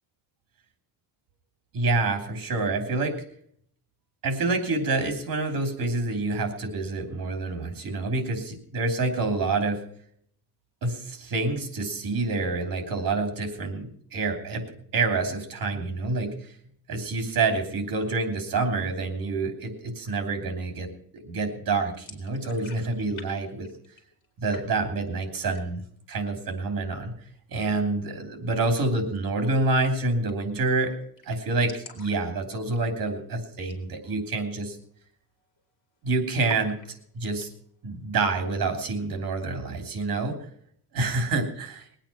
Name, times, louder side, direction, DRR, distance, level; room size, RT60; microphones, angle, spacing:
voice 1, 1.7-3.2 4.2-9.8 10.8-14.7 14.9-16.5 16.9-20.9 21.1-23.7 24.4-25.8 26.1-27.1 27.5-30.9 31.2-34.8 36.0-36.8 37.1-37.5 37.8-40.4 40.9-41.7, right 3 dB, 60° right, 6 dB, 3.2 m, -27 dB
sound 1, 21.9-23.3 23.5-24.3 24.5-25.1 25.4-25.9 26.3-26.4 26.7-27.4 29.0-29.2 29.5-29.6 29.8-29.9 30.3-30.6 30.9-31.0 31.2-33.2 33.6-33.9 34.2-34.3 34.8-35.1 35.4-36.0 36.5-37.5, left 5 dB, 50° left, 3.2 m, -49 dB
21.0 x 9.0 x 5.8 m, 0.63 s
wide cardioid pair, 170°, 40 cm